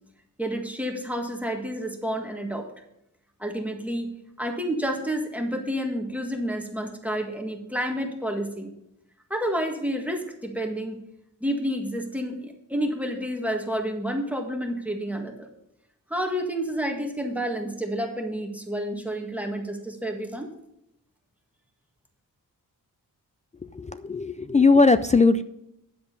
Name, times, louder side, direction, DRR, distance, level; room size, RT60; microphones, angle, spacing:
voice 1, 0.4-2.7 3.4-4.1 4.4-8.7 9.3-11.0 11.4-15.5 16.1-20.5, equal, 5° right, 2 dB, 1.7 m, -29 dB
voice 2, 23.7-25.4, left 3 dB, 20° left, 12 dB, 0.4 m, -19 dB
9.9 x 7.7 x 5.4 m, 0.80 s
wide cardioid pair, 95°, 35 cm